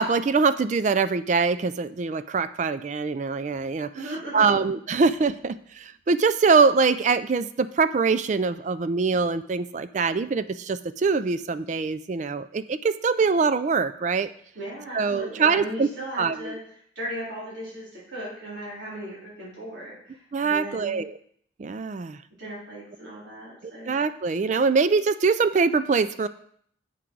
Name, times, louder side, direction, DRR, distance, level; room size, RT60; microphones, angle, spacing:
voice 1, 0.0-3.9 4.3-14.3 14.9-15.9 16.2-16.5 20.3-21.1 21.6-22.2 23.6-26.3, right 4 dB, 40° right, 14 dB, 0.3 m, -23 dB
voice 2, 3.9-4.6 14.5-16.6 17.0-21.0 22.4-23.9, right 1 dB, 75° right, -7 dB, 3.8 m, -37 dB
8.1 x 6.1 x 4.6 m, 0.63 s
head